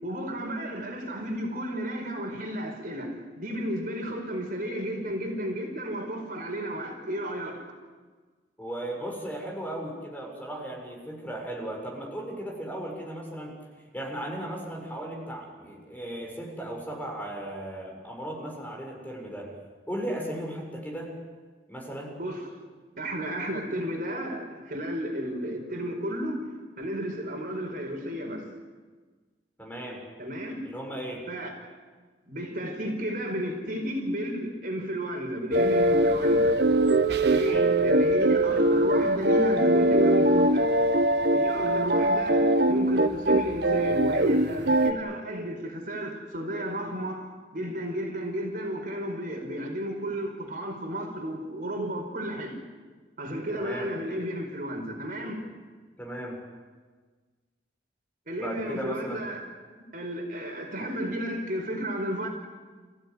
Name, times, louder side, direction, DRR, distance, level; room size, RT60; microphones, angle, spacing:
voice 1, 0.0-7.6 22.2-22.5 22.9-28.4 30.2-30.6 31.3-31.5 32.3-36.6 37.3-40.7 41.3-52.6 53.2-55.4 58.3-59.4 59.9-62.3, equal, 55° right, 2 dB, 5.1 m, -33 dB
voice 2, 8.6-13.5 13.9-19.5 19.9-21.1 21.7-22.1 29.6-30.0 30.6-31.2 37.4-37.7 53.5-53.9 56.0-56.4 58.4-59.2, right 1 dB, 10° left, -1 dB, 7.1 m, -36 dB
sound 1, 35.5-44.9, right 1 dB, 70° right, 1.3 m, -22 dB
29.5 x 16.0 x 9.8 m, 1.4 s
head